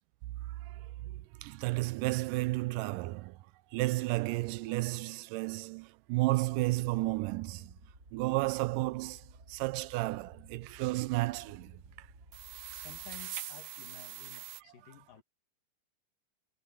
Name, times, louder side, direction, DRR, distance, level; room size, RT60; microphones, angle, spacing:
voice 1, 0.5-3.4 3.7-7.8 8.1-12.1, right 21 dB, 80° right, 2.1 m, -33 dB
sound 1, 6.5-13.4, right 1 dB, 25° right, 8.5 m, -56 dB
sound 2, 12.3-14.6, right 12 dB, 65° right, 2.0 m, -43 dB
voice 2, 12.7-15.2, left 11 dB, 75° left, 3.4 m, -53 dB
omnidirectional pair, 3.9 m